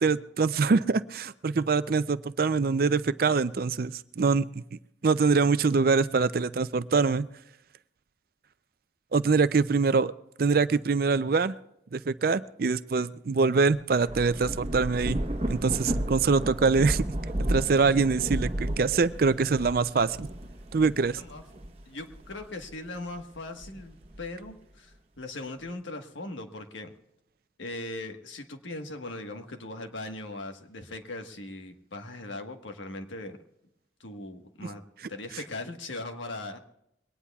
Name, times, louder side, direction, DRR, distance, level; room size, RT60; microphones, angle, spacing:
voice 1, 0.0-4.6 5.0-7.3 9.1-10.1 10.4-11.5 11.9-15.2 15.5-17.0 17.5-20.3 20.7-21.2, right 4 dB, 50° right, 14 dB, 0.4 m, -24 dB
Thunder / Rain, 13.7-22.6 23.2-24.5, right 1 dB, 30° right, 1.1 m, -33 dB
voice 2, 21.8-26.9 27.6-33.4 34.0-36.6, left 2 dB, 85° left, 5 dB, 1.4 m, -39 dB
22.5 x 18.5 x 2.4 m, 0.80 s
head